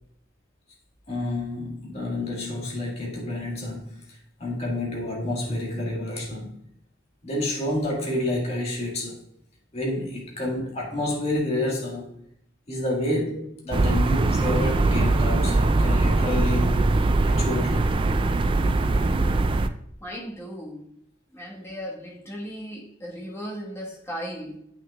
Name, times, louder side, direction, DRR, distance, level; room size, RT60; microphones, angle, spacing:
voice 1, 1.1-6.6 7.2-9.2 9.7-12.2 12.7-16.8 17.2-18.0, left 1 dB, 35° left, 1.9 m, -29 dB
sound 1, 13.7-19.7, right 2 dB, 25° right, 0.3 m, -21 dB
voice 2, 20.0-21.0 21.3-24.6, equal, 15° left, 1.5 m, -36 dB
8.8 x 6.2 x 2.4 m
head